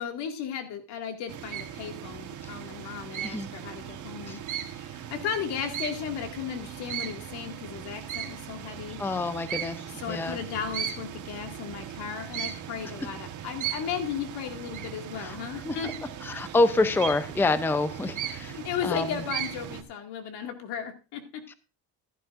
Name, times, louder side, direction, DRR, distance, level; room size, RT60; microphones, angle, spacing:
voice 1, 0.0-9.0 10.0-15.9 18.5-21.4, left 8 dB, 80° left, 5 dB, 2.2 m, -35 dB
sound 1, 1.3-19.8, right 10 dB, 50° right, 1.3 m, -38 dB
voice 2, 9.0-10.4 15.2-15.4 15.7-15.8 16.2-19.2, left 2 dB, 5° left, 12 dB, 0.6 m, -27 dB
15.0 x 11.5 x 2.5 m, 0.32 s
cardioid pair, 125°, 39 cm